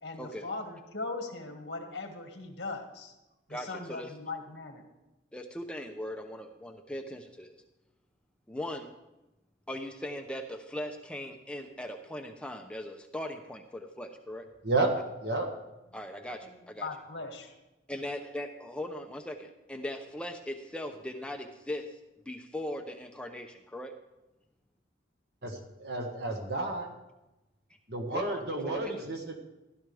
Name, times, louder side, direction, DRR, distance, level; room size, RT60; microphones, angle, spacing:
voice 1, 0.0-3.1 3.5-4.8 16.3-16.4 16.8-17.5, left 3 dB, 60° left, 3 dB, 1.9 m, -39 dB
voice 2, 3.5-4.1 5.3-7.6 8.5-8.9 9.7-14.5 15.9-16.9 17.9-21.9 22.3-23.9 28.1-29.1, left 1 dB, 5° left, 4 dB, 0.7 m, -39 dB
voice 3, 25.4-26.9 27.9-29.3, right 2 dB, 60° right, 2 dB, 1.6 m, -31 dB
15.5 x 11.5 x 3.5 m, 0.97 s
head